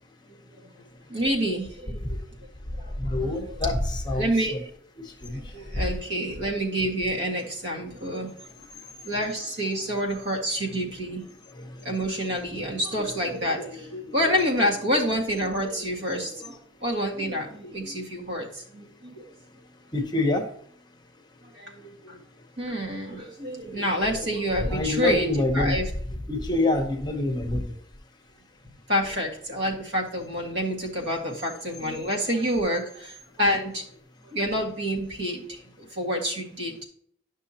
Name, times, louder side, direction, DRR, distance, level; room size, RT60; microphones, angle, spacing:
voice 1, 0.6-2.5 2.8-3.7 4.2-4.7 5.3-8.5 9.0-11.2 11.8-19.3 21.4-22.2 22.6-25.9 26.6-26.9 27.5-27.6 28.9-33.8 34.2-36.8, equal, 70° right, -1 dB, 1.8 m, -28 dB
voice 2, 3.0-4.3 5.0-5.5 11.5-11.8 19.9-20.5 24.7-25.8 26.3-27.7, left 2 dB, 20° left, 5 dB, 0.8 m, -26 dB
11.0 x 6.0 x 2.9 m, 0.62 s
head